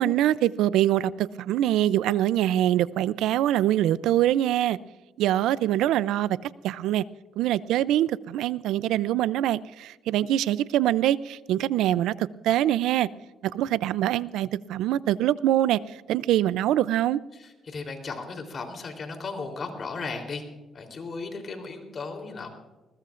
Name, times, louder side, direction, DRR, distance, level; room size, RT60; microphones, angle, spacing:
voice 1, 0.0-4.8 5.2-6.4 6.6-7.0 7.4-13.1 13.4-15.8 16.1-17.2, right 13 dB, 90° right, 19 dB, 0.4 m, -24 dB
voice 2, 17.3-20.5 20.7-22.5, left 4 dB, 45° left, 4 dB, 3.5 m, -36 dB
21.0 x 20.0 x 2.5 m, 1.1 s
cardioid pair, 90°, 0 cm